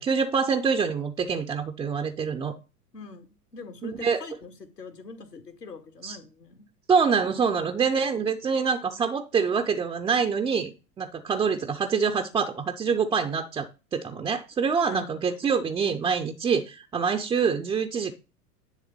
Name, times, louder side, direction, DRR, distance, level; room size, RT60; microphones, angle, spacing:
voice 1, 0.0-2.5 3.8-4.2 6.0-6.2 6.9-18.1, right 6 dB, 10° right, 0.4 m, -26 dB
voice 2, 2.9-6.6 14.9-15.0, left 4 dB, 80° left, 1.9 m, -43 dB
10.5 x 3.5 x 6.7 m
figure-of-eight pair, 85°, 48 cm